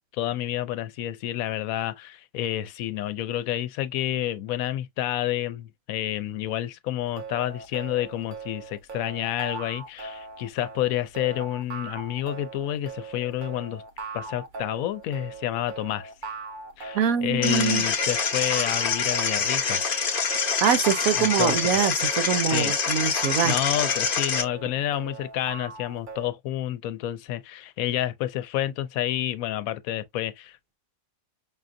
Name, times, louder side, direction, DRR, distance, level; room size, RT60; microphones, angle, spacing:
voice 1, 0.0-13.8 14.1-16.1 16.8-19.8 21.2-21.8 22.5-22.7 23.1-30.6, left 12 dB, 90° left, 1.0 m, -29 dB
sound 1, 7.0-26.3, right 4 dB, 45° right, 0.8 m, -40 dB
voice 2, 16.9-17.8 20.6-23.5, right 8 dB, 90° right, 1.2 m, -24 dB
sound 2, 17.4-24.4, left 5 dB, 45° left, 0.8 m, -26 dB
5.4 x 2.5 x 2.5 m
omnidirectional pair, 1.4 m